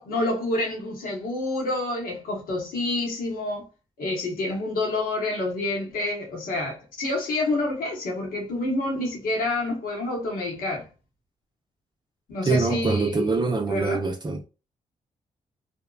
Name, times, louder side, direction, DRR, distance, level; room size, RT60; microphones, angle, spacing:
voice 1, 0.0-3.7 4.0-10.9 12.3-13.3 13.7-14.0, left 2 dB, 75° left, 1.1 m, -28 dB
voice 2, 12.5-14.4, right 3 dB, 30° right, 0.6 m, -24 dB
2.6 x 2.1 x 2.3 m
supercardioid pair, 45°, 15 cm